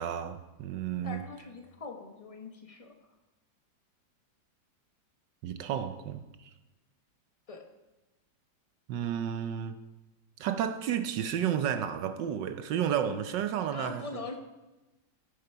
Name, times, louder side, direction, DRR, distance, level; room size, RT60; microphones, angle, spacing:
voice 1, 0.0-1.2 5.4-6.5 8.9-9.8 10.4-14.0, right 9 dB, 75° right, 1.3 m, -32 dB
voice 2, 1.0-3.1 7.5-7.6 13.7-14.4, left 3 dB, 25° left, 0.9 m, -42 dB
16.0 x 7.0 x 4.6 m
omnidirectional pair, 2.1 m